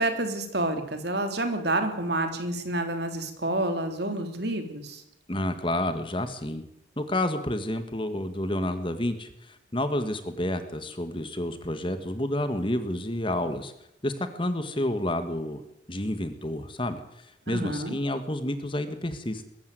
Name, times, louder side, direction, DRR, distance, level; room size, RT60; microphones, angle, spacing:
voice 1, 0.0-5.0 17.5-18.0, right 1 dB, 55° right, 7 dB, 3.3 m, -29 dB
voice 2, 5.3-6.6 7.0-13.7 14.0-15.6 15.9-19.4, left 1 dB, 25° left, 10 dB, 1.8 m, -30 dB
22.0 x 14.5 x 9.4 m, 0.80 s
head